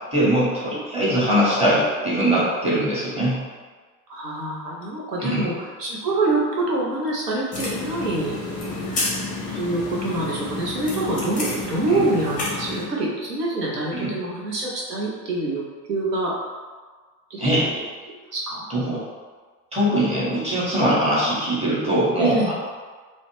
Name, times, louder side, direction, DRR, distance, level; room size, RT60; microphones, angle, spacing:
voice 1, 0.1-3.4 5.2-5.5 11.9-12.0 13.9-14.1 17.4-17.7 18.7-19.0 19.7-22.5, equal, 15° right, -8 dB, 0.9 m, -21 dB
voice 2, 4.1-8.9 9.6-15.6 15.9-16.3 17.3-17.6 18.3-19.0 22.2-22.5, right 2 dB, 80° right, -4 dB, 0.7 m, -26 dB
sound 1, 7.5-12.8, left 3 dB, 20° left, 0.5 m, -30 dB
2.4 x 2.0 x 3.0 m, 1.4 s
figure-of-eight pair, 70°, 47 cm